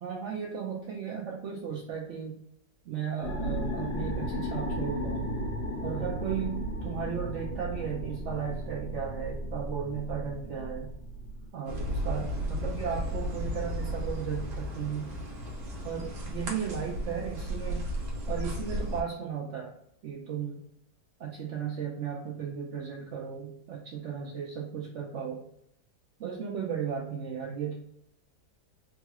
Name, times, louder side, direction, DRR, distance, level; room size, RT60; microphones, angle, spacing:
voice 1, 0.0-2.4 2.9-5.3 5.8-10.9 11.5-15.1 15.8-17.9 18.3-19.7 20.0-20.6 21.2-25.4 26.2-27.7, right 7 dB, 85° right, -2 dB, 0.6 m, -35 dB
sound 1, 3.2-11.5, equal, 80° left, 1.7 m, -35 dB
sound 2, 11.7-19.0, equal, 60° right, 1.3 m, -34 dB
3.8 x 2.4 x 2.9 m, 0.75 s
omnidirectional pair, 1.9 m